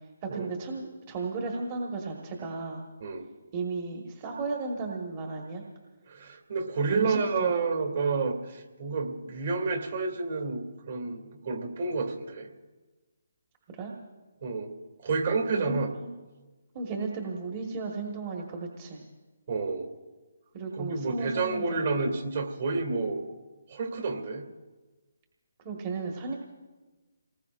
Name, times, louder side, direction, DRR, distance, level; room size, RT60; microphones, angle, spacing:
voice 1, 0.2-2.8 3.5-5.6 6.9-7.5 13.7-13.9 15.5-16.1 16.7-19.0 20.5-21.8 25.6-26.3, right 3 dB, 30° right, 0 dB, 1.5 m, -34 dB
voice 2, 6.1-12.5 14.4-14.7 15.0-15.9 19.5-19.9 20.7-23.2 23.7-24.4, right 4 dB, 55° right, 3 dB, 2.4 m, -30 dB
27.5 x 19.5 x 2.5 m, 1.2 s
figure-of-eight pair, 150°, 0 cm